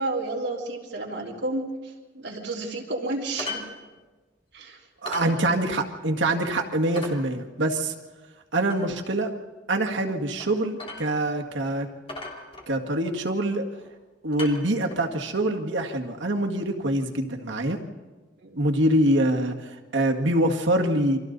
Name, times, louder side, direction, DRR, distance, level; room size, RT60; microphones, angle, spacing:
voice 1, 0.0-3.7 4.5-4.8 18.4-18.6, right 2 dB, 70° right, -3 dB, 3.7 m, -31 dB
sound 1, 3.4-3.7 4.0-4.1 4.5-4.6 5.0-5.3 5.8-5.9 6.3-6.4 6.9-7.2 8.7-8.8 10.4-10.5 10.8-11.4 11.6-11.7 12.1-13.0 13.7-14.0 14.3-15.1 16.1-16.2, left 2 dB, 30° left, 3.1 m, -37 dB
voice 2, 5.0-7.9 8.5-9.4 9.7-11.9 12.7-13.6 14.2-17.8 18.6-21.2, right 1 dB, 85° right, 2 dB, 1.9 m, -25 dB
29.0 x 24.5 x 4.0 m, 1.3 s
head